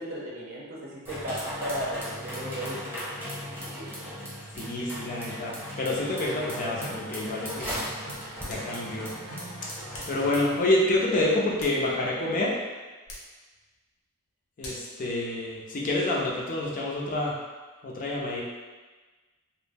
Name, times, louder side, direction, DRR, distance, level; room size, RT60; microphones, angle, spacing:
voice 1, 0.0-3.3 3.7-4.1 9.9-10.0, equal, 45° right, -4 dB, 0.6 m, -36 dB
sound 1, 1.0-10.6, equal, 10° right, 0.9 m, -38 dB
voice 2, 4.6-7.8 8.4-9.1 10.1-12.6 14.6-17.3 17.8-18.4, left 1 dB, 40° left, -3 dB, 0.4 m, -28 dB
sound 2, 5.9-10.5, right 1 dB, 90° right, 0.6 m, -43 dB
sound 3, 8.5-8.8 9.9-10.2 11.3-12.2 13.0-13.4 14.6-15.0, left 1 dB, 70° left, 0.7 m, -43 dB
2.4 x 2.0 x 3.3 m, 1.3 s
head